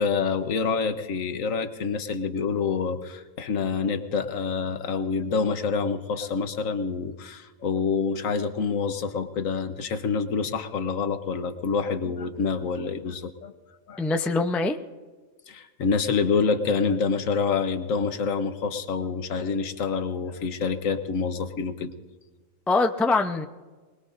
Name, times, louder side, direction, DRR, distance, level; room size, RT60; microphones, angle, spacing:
voice 1, 0.0-13.5 13.9-14.0 15.5-21.9, left 5 dB, 75° left, 8 dB, 1.3 m, -27 dB
voice 2, 14.0-14.8 22.7-23.5, left 3 dB, ahead, 6 dB, 0.4 m, -23 dB
24.5 x 20.5 x 2.6 m, 1.3 s
omnidirectional pair, 1.4 m